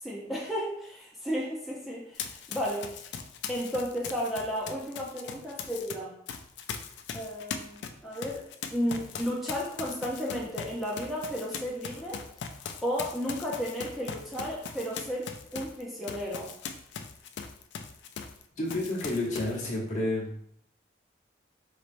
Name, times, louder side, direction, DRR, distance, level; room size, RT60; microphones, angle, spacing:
voice 1, 0.0-3.2 3.5-6.1 7.1-12.2 12.8-16.5, equal, ahead, -4 dB, 0.5 m, -33 dB
Run, 2.2-5.9 6.3-18.4 18.7-19.6, left 6 dB, 75° left, 0.4 m, -40 dB
voice 2, 18.6-20.3, left 1 dB, 45° left, -3 dB, 1.0 m, -30 dB
4.1 x 3.2 x 2.5 m, 0.71 s
head